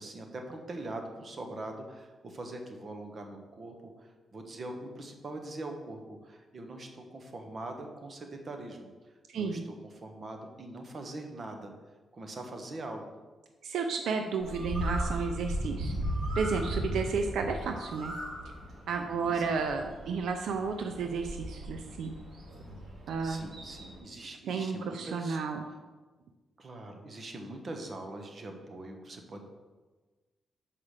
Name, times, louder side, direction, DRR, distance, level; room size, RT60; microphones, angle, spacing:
voice 1, 0.0-8.9 9.3-11.7 12.1-13.0 19.2-19.6 20.1-20.3 23.2-25.4 26.6-29.5, right 2 dB, 45° right, 4 dB, 1.1 m, -42 dB
voice 2, 9.3-9.7 13.6-15.9 16.4-18.1 18.9-22.1 23.1-23.5 24.5-25.6, right 5 dB, 85° right, 5 dB, 0.5 m, -32 dB
Bird, 14.4-24.0, equal, 70° right, 2.6 m, -37 dB
5.8 x 4.9 x 6.6 m, 1.3 s
cardioid pair, 105°, 0 cm